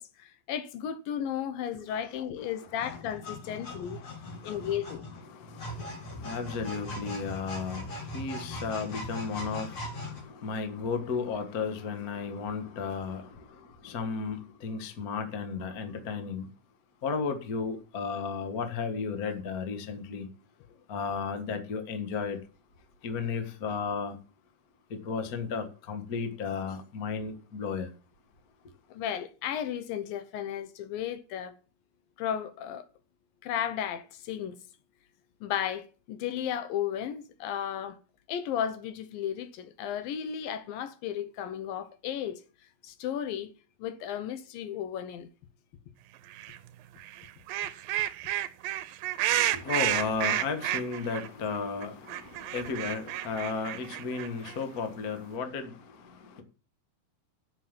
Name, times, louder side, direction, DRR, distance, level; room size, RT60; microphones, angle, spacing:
voice 1, 0.0-4.1 4.4-5.1 28.9-31.6 32.2-32.9 33.4-34.6 35.4-38.0 38.3-42.4 42.8-43.5 43.8-45.3, left 9 dB, 75° left, 2.5 m, -34 dB
sound 1, 2.7-10.2, left 1 dB, 35° left, 3.5 m, -40 dB
voice 2, 3.7-4.7 5.2-16.5 17.0-20.3 20.9-22.4 23.0-24.2 24.9-27.9 49.3-56.4, left 5 dB, 55° left, 0.9 m, -34 dB
sound 2, 46.3-46.6 47.0-51.3 51.5-51.6 51.8-54.6, right 13 dB, 75° right, 2.3 m, -31 dB
11.0 x 7.2 x 7.4 m
omnidirectional pair, 4.5 m